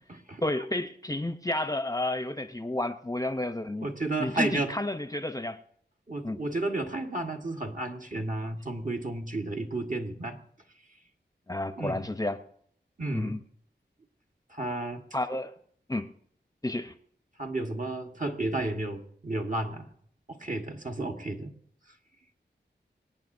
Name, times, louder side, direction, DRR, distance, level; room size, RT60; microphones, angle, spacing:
voice 1, 0.4-3.9 4.2-5.6 6.2-6.4 11.5-12.4 13.1-13.4 15.1-15.5 15.9-16.1 16.6-16.9, left 1 dB, 20° left, 9 dB, 0.7 m, -31 dB
voice 2, 3.8-4.7 6.1-10.4 11.7-12.1 13.0-13.4 14.5-15.0 17.4-19.9 20.3-21.5, right 2 dB, 45° right, 2 dB, 1.5 m, -32 dB
26.0 x 8.9 x 2.6 m, 0.64 s
wide cardioid pair, 55°, 19 cm